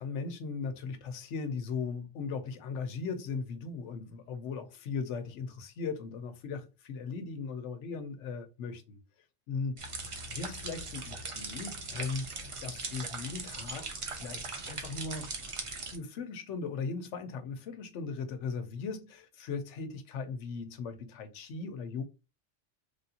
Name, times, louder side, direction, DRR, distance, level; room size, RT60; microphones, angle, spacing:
voice 1, 0.0-9.0 9.5-9.7 10.3-12.3 12.6-15.3 15.9-22.0, left 5 dB, 80° left, 1.0 m, -38 dB
sound 1, 9.8-16.0, right 3 dB, 45° right, 0.4 m, -40 dB
3.3 x 2.5 x 2.7 m
omnidirectional pair, 1.2 m